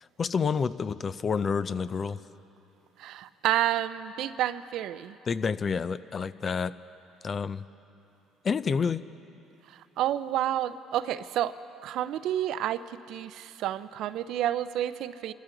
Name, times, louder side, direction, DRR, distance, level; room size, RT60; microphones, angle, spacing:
voice 1, 0.2-2.2 5.3-6.7 7.2-7.6 8.4-9.0, left 6 dB, 40° left, 15 dB, 0.5 m, -28 dB
voice 2, 3.0-5.2 9.7-11.6 11.8-15.3, right 12 dB, 70° right, 14 dB, 0.5 m, -30 dB
26.0 x 13.5 x 3.9 m, 2.8 s
supercardioid pair, 85°, 0 cm